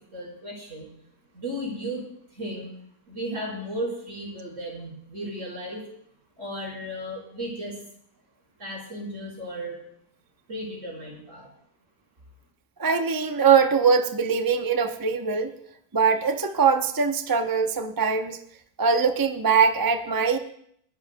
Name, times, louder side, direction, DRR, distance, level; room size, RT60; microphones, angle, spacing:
voice 1, 0.1-0.9 1.3-2.0 2.3-2.7 3.1-5.8 6.4-7.8 8.6-9.8 10.5-11.5, equal, 50° right, -4 dB, 5.0 m, -34 dB
voice 2, 12.8-15.6 15.9-18.4 18.8-20.4, right 6 dB, 30° right, 6 dB, 0.4 m, -22 dB
29.5 x 11.0 x 2.2 m, 0.68 s
omnidirectional pair, 1.7 m